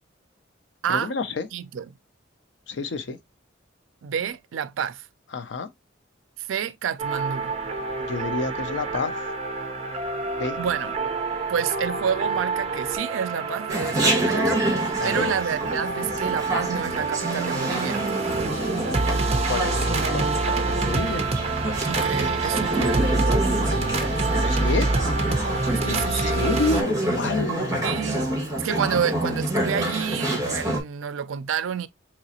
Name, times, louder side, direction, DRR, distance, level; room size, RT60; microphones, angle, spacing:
voice 1, 0.9-1.5 2.7-3.2 5.3-5.7 8.0-9.2 10.4-10.6 15.0-15.3 19.5-21.3 24.4-25.0 25.3-27.9, left 3 dB, 65° left, 0.5 m, -29 dB
voice 2, 1.5-1.9 4.0-5.1 6.4-7.6 10.6-11.1 11.5-18.0 21.8-23.0 25.8-26.5 27.8-31.9, right 8 dB, 85° right, 0.4 m, -29 dB
sound 1, 7.0-26.8, right 3 dB, 30° right, 0.6 m, -27 dB
Chatter, 13.7-30.8, right 1 dB, 15° right, 1.2 m, -28 dB
sound 2, 20.6-26.4, equal, 10° left, 0.7 m, -39 dB
3.9 x 3.0 x 2.7 m
head